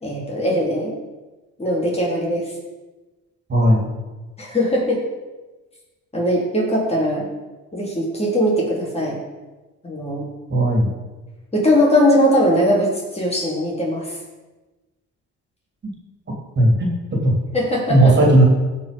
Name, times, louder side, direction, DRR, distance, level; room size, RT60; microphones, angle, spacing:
voice 1, 0.0-0.9 1.6-2.5 4.4-5.0 6.1-7.3 7.7-9.2 9.8-10.3 11.5-14.2 17.5-18.1, equal, 20° left, -3 dB, 3.8 m, -20 dB
voice 2, 3.5-3.9 10.5-10.9 16.6-16.9 17.2-17.4 17.9-18.4, right 1 dB, 35° right, -1 dB, 3.2 m, -15 dB
16.0 x 5.4 x 5.3 m, 1.2 s
cardioid pair, 90°, 30 cm